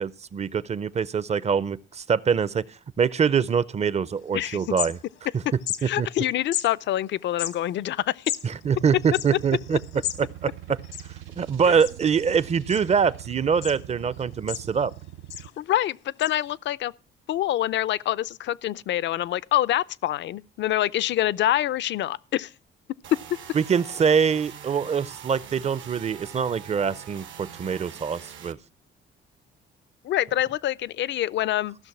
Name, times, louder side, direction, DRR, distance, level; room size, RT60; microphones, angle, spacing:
voice 1, 0.0-5.0 5.8-6.1 8.4-9.8 10.2-10.8 11.4-14.9 23.5-28.6, right 6 dB, 35° right, 0.5 m, -24 dB
sound 1, 4.2-4.3 4.5-5.3 5.6-5.8 6.5-6.7 7.3-10.2 10.5-10.6 10.8-11.5 11.8-12.2 12.7-13.2 13.6-13.8 14.2-14.9 15.3-15.5 16.2-16.3, left 12 dB, 90° left, 1.4 m, -33 dB
voice 2, 5.8-8.3 11.6-11.8 15.4-16.9 17.3-22.5 30.0-31.8, left 13 dB, 65° left, 0.5 m, -26 dB
sound 2, 8.6-15.5, right 13 dB, 90° right, 0.5 m, -43 dB
sound 3, 23.0-28.5, right 8 dB, 75° right, 1.1 m, -43 dB
15.0 x 6.3 x 5.9 m
cardioid pair, 90°, 20 cm